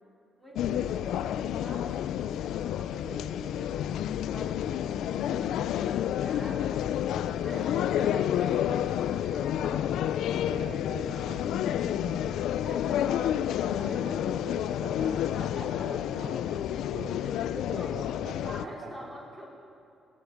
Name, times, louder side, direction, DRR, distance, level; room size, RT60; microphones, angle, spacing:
voice 1, 0.4-6.8 7.4-9.9 10.3-10.5 12.6-14.0 15.3-15.9 17.2-17.9 18.4-19.5, equal, 15° right, -4 dB, 4.7 m, -46 dB
sound 1, 0.6-18.7, left 10 dB, 80° left, 0.4 m, -30 dB
voice 2, 7.2-8.7 10.4-15.3 15.8-16.6 16.9-17.2 17.5-18.9, right 3 dB, 90° right, 1 dB, 2.1 m, -44 dB
18.0 x 7.2 x 9.3 m, 2.6 s
cardioid pair, 90°, 0 cm